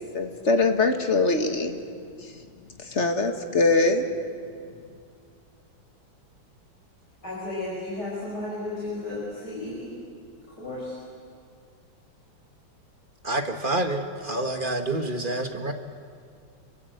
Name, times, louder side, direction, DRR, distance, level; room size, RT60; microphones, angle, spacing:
voice 1, 0.1-1.8 2.9-4.0, left 3 dB, 35° left, 6 dB, 1.8 m, -22 dB
voice 2, 7.2-9.9 10.5-11.0, left 2 dB, 55° left, -7 dB, 6.5 m, -33 dB
voice 3, 13.2-15.7, right 2 dB, 30° right, 6 dB, 1.5 m, -28 dB
27.5 x 23.5 x 7.9 m, 2.3 s
omnidirectional pair, 2.2 m